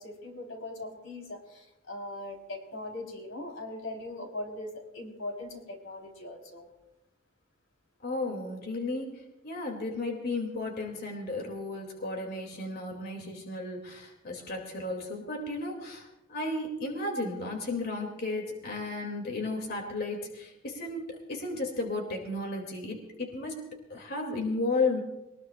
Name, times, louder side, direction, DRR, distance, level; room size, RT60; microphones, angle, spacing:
voice 1, 0.0-6.7, left 2 dB, 85° left, 1 dB, 3.9 m, -40 dB
voice 2, 8.0-25.0, left 2 dB, 55° left, 2 dB, 2.6 m, -34 dB
22.0 x 20.0 x 2.5 m, 0.98 s
head